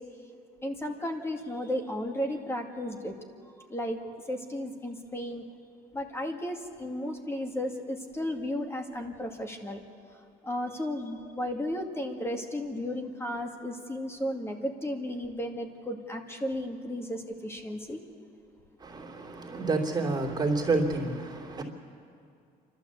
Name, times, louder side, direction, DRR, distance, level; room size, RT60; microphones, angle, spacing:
voice 1, 0.6-3.1 3.7-4.0 4.3-5.5 5.9-9.8 10.4-18.0, left 1 dB, 15° left, 4 dB, 2.3 m, -34 dB
voice 2, 18.8-21.6, right 3 dB, 25° right, -1 dB, 2.9 m, -29 dB
28.5 x 12.5 x 8.2 m, 2.4 s
cardioid pair, 110°, 17 cm